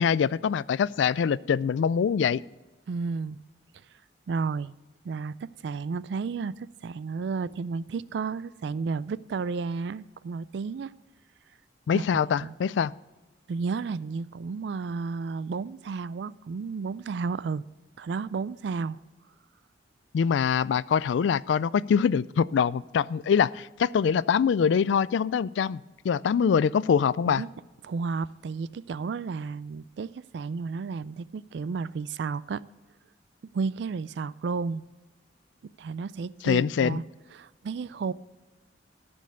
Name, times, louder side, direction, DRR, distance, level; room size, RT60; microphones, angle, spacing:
voice 1, 0.0-2.4 11.9-12.9 20.1-27.4 36.4-37.0, left 7 dB, 80° left, 0.3 m, -24 dB
voice 2, 2.9-3.4 4.3-4.7 5.0-10.9 11.9-12.5 13.5-17.6 18.0-19.0 27.3-27.5 27.8-32.6 33.5-34.9 35.8-37.0 37.4-38.1, right 4 dB, 70° right, 0.3 m, -32 dB
14.0 x 5.3 x 6.7 m
head